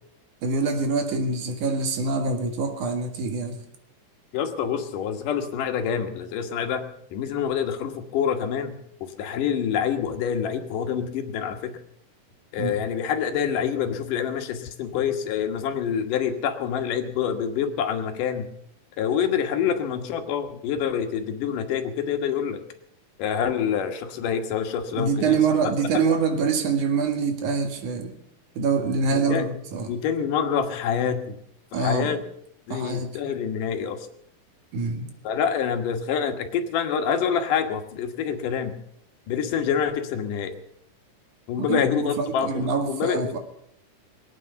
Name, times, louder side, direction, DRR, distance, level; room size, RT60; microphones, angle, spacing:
voice 1, 0.4-3.6 12.6-12.8 25.0-28.1 28.6-29.9 31.7-32.2 32.7-33.1 34.7-35.1 41.6-43.4, right 4 dB, 70° right, 5 dB, 3.2 m, -25 dB
voice 2, 4.3-6.9 7.1-8.8 9.0-11.7 12.5-18.5 19.0-22.6 23.2-25.4 25.6-26.1 29.1-29.5 29.9-31.4 31.7-32.2 32.7-34.1 35.2-38.8 39.3-40.5 41.5-43.4, left 7 dB, 80° left, 6 dB, 2.9 m, -26 dB
22.0 x 9.1 x 6.9 m, 0.72 s
omnidirectional pair, 3.7 m